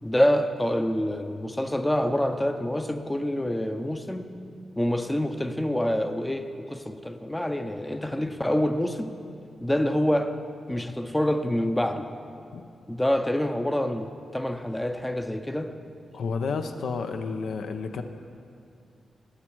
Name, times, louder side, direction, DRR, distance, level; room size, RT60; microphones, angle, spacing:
voice 1, 0.0-4.3 4.8-9.1 9.6-10.4 10.7-12.1 12.9-15.7, left 1 dB, 10° left, 8 dB, 0.6 m, -26 dB
voice 2, 16.1-18.0, left 5 dB, 80° left, 7 dB, 0.7 m, -30 dB
19.5 x 7.4 x 4.6 m, 2.5 s
wide cardioid pair, 110°, 0 cm